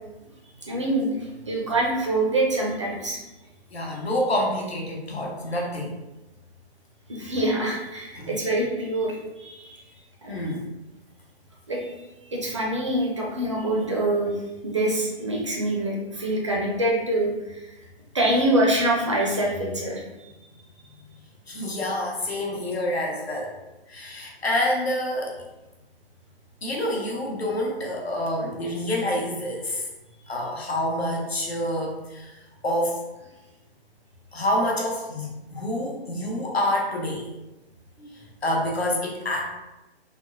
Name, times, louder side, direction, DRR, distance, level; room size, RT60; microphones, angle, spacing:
voice 1, 0.6-3.2 7.1-9.8 10.2-10.4 11.7-12.0 12.3-14.3 14.6-17.7 18.1-20.0 20.4-20.5 30.2-30.3, right 1 dB, 30° right, -3 dB, 0.4 m, -25 dB
voice 2, 3.7-6.0 8.1-8.4 10.3-10.7 21.5-23.5 23.9-25.3 26.6-29.9 30.3-32.3 32.6-33.0 34.3-37.3 38.0-39.6, left 1 dB, 75° left, -1 dB, 0.9 m, -27 dB
3.4 x 2.1 x 2.5 m, 1.0 s
figure-of-eight pair, 130°, 32 cm